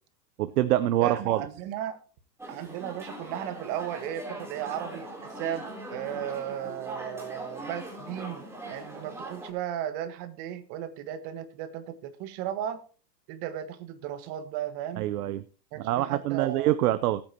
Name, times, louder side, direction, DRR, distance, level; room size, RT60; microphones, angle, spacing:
voice 1, 0.4-1.4 15.0-15.4 15.8-17.2, right 14 dB, 60° right, 14 dB, 0.8 m, -25 dB
voice 2, 1.0-2.0 2.5-12.8 13.3-15.1 15.7-16.7, right 11 dB, 35° right, 10 dB, 1.6 m, -35 dB
sound 1, 2.4-9.5, right 1 dB, 5° right, 3.5 m, -41 dB
19.5 x 9.0 x 3.0 m, 0.39 s
hypercardioid pair, 140°, 50 cm